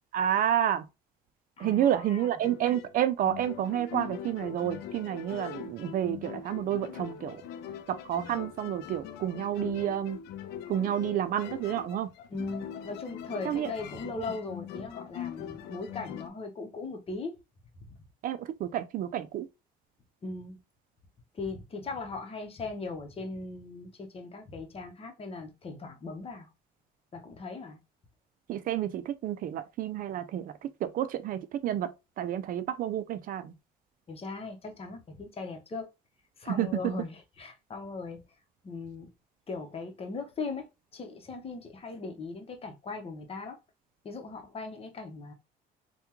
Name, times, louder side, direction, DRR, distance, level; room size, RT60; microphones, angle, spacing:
voice 1, 0.1-0.9 1.6-7.4 7.9-10.2 10.7-12.1 13.4-13.7 18.2-19.5 28.5-33.5 36.5-36.9, right 11 dB, 55° right, 0.4 m, -30 dB
voice 2, 1.6-2.3 12.3-17.3 17.9-18.0 20.2-20.6 21.3-26.5 27.1-27.8 34.1-35.9 36.4-38.2 38.6-39.1 39.5-43.6 44.0-45.3, left 3 dB, 35° left, 0.9 m, -39 dB
sound 1, 2.4-16.3, left 9 dB, 80° left, 0.4 m, -42 dB
3.4 x 2.3 x 3.0 m
cardioid pair, 110°, 17 cm